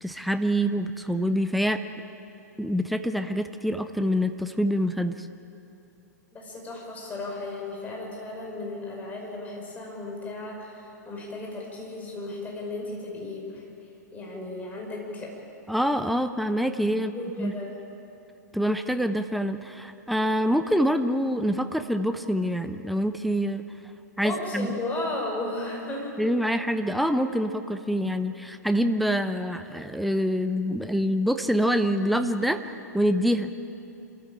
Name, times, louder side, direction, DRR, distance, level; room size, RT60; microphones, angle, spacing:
voice 1, 0.0-1.8 2.6-5.3 15.7-17.1 17.4-17.5 18.5-23.6 24.2-24.8 26.2-33.5, equal, ahead, 9 dB, 0.7 m, -26 dB
voice 2, 6.3-13.7 14.1-15.3 16.9-17.7 24.2-26.2, left 2 dB, 15° left, -1 dB, 5.4 m, -35 dB
26.5 x 14.5 x 8.8 m, 2.8 s
figure-of-eight pair, 105°, 10 cm